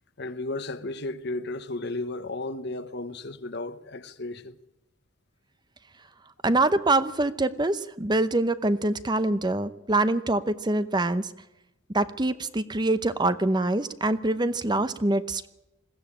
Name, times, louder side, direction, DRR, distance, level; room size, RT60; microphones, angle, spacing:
voice 1, 0.2-4.6, left 2 dB, 60° left, 1.2 m, -34 dB
voice 2, 6.4-11.3 11.9-15.5, right 2 dB, 20° right, 0.8 m, -25 dB
21.5 x 15.5 x 8.7 m
head